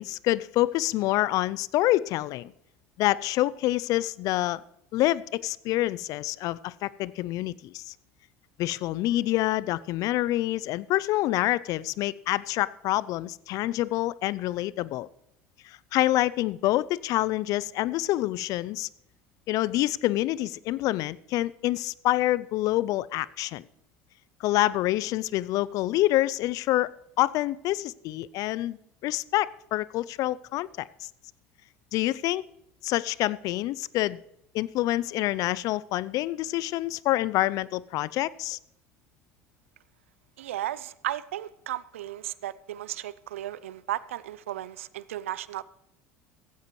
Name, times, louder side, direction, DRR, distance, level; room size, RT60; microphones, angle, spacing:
voice 1, 0.0-2.5 3.0-4.6 4.9-7.8 8.6-15.1 15.6-18.9 19.5-23.6 24.4-26.9 27.2-28.8 29.0-30.9 31.9-32.4 32.8-34.2 34.5-38.6, left 16 dB, 55° left, 21 dB, 0.4 m, -27 dB
voice 2, 40.4-45.6, right 13 dB, 80° right, 19 dB, 0.4 m, -35 dB
15.5 x 15.5 x 3.1 m, 0.79 s
hypercardioid pair, 70°, 7 cm